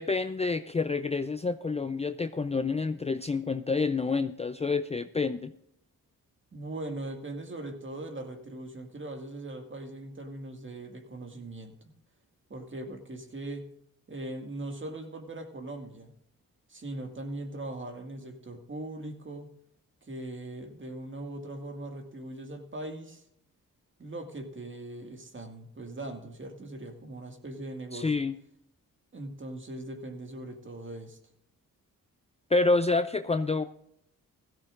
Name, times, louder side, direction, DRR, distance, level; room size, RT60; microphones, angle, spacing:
voice 1, 0.0-5.5 27.9-28.3 32.5-33.6, left 3 dB, 20° left, 9 dB, 0.5 m, -28 dB
voice 2, 6.5-11.8 12.5-13.7 14.1-16.1 16.7-19.5 20.0-23.2 24.0-28.1 29.1-31.2, right 1 dB, 35° right, 4 dB, 2.1 m, -40 dB
16.0 x 14.0 x 2.5 m, 0.74 s
cardioid pair, 65°, 35 cm